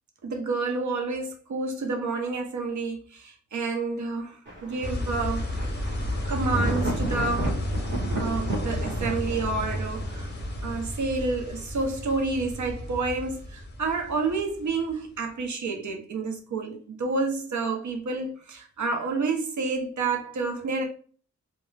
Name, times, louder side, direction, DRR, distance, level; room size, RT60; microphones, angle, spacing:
voice 1, 0.2-5.5 6.3-7.6 8.1-10.3 10.6-20.8, right 3 dB, 70° right, 0.6 m, -29 dB
Thunder, 4.5-10.9, right 1 dB, 40° right, 0.8 m, -34 dB
sound 1, 4.8-14.9, left 1 dB, 35° left, 0.5 m, -32 dB
2.3 x 2.2 x 3.1 m
wide cardioid pair, 145°, 30 cm